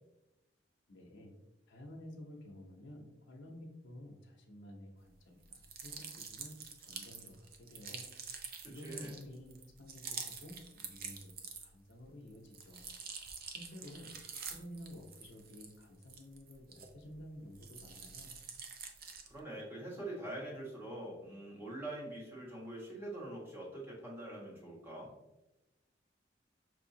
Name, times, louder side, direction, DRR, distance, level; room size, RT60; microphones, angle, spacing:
voice 1, 0.9-1.3 1.7-6.5 6.8-8.1 8.6-12.8 13.5-14.1 14.5-18.4, left 1 dB, 80° left, 0 dB, 0.7 m, -52 dB
sound 1, 5.4-11.9 12.3-17.2 17.5-19.4, right 6 dB, 55° right, 0.5 m, -47 dB
voice 2, 8.8-9.1 19.3-25.1, right 1 dB, 15° right, -5 dB, 1.3 m, -44 dB
5.7 x 2.8 x 2.7 m, 1.0 s
head